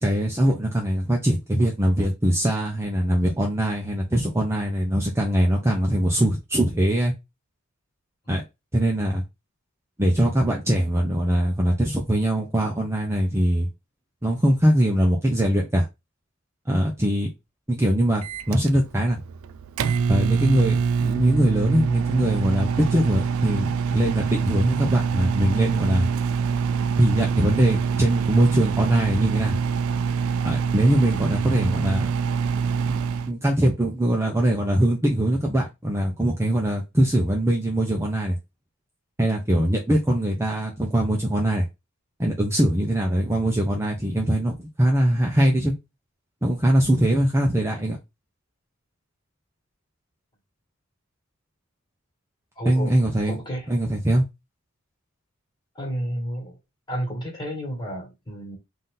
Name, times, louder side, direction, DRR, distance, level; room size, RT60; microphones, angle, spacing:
voice 1, 0.0-7.1 8.3-8.4 8.7-9.2 10.0-13.7 14.2-15.9 16.7-17.3 17.7-19.2 20.1-26.1 27.0-29.6 30.4-32.1 33.3-38.4 39.2-41.6 42.2-45.7 46.4-48.0 52.6-53.4 53.7-54.2, right 1 dB, 10° right, 0.6 m, -22 dB
Microwave oven, 18.2-33.3, right 6 dB, 75° right, 0.3 m, -25 dB
voice 2, 52.5-52.9 53.3-53.7 55.7-56.6 56.9-58.6, equal, 20° left, 1.7 m, -31 dB
3.9 x 2.6 x 3.8 m
head